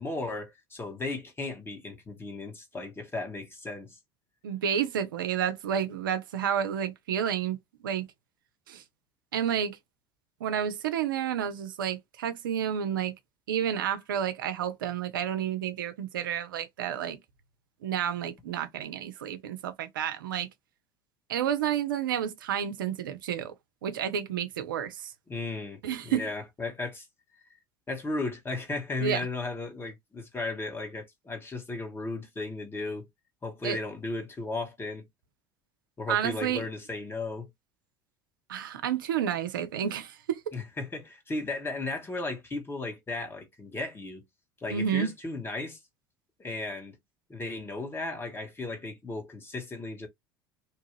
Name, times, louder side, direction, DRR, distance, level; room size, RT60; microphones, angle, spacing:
voice 1, 0.0-4.0 18.0-18.1 25.3-27.1 27.9-33.1 33.4-35.1 36.0-37.5 40.5-44.2 44.6-45.8 46.4-46.9 47.3-50.1, left 2 dB, 20° left, 1.4 m, -35 dB
voice 2, 4.4-7.6 7.8-8.1 8.7-8.8 9.3-9.8 10.4-13.1 13.5-17.2 17.8-20.5 21.3-23.5 23.8-25.1 25.8-26.3 29.0-29.2 33.6-33.8 36.1-36.6 38.5-40.4 44.7-45.1, right 9 dB, 75° right, 0.5 m, -30 dB
2.9 x 2.3 x 3.1 m
figure-of-eight pair, 70°, 11 cm